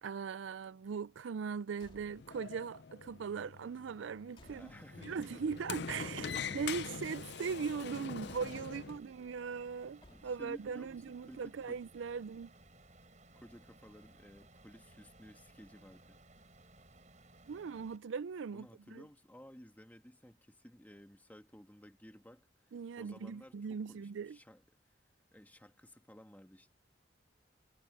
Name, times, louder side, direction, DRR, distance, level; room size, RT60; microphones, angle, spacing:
voice 1, 0.0-4.7 5.0-12.5 17.5-19.0 22.7-24.4, right 6 dB, 75° right, 0.4 m, -40 dB
Car / Truck / Slam, 1.7-2.5 3.7-5.2 6.2-7.0 8.2-8.9 10.0-10.7, left 1 dB, 25° left, 2.6 m, -62 dB
Sliding door, 1.9-9.0, left 6 dB, 60° left, 0.5 m, -44 dB
sound 1, 4.4-18.0, right 2 dB, 40° right, 6.4 m, -61 dB
voice 2, 4.5-5.6 6.3-6.8 8.6-9.2 10.1-11.8 13.3-16.2 18.5-24.6 25.3-26.7, equal, 10° left, 1.8 m, -56 dB
head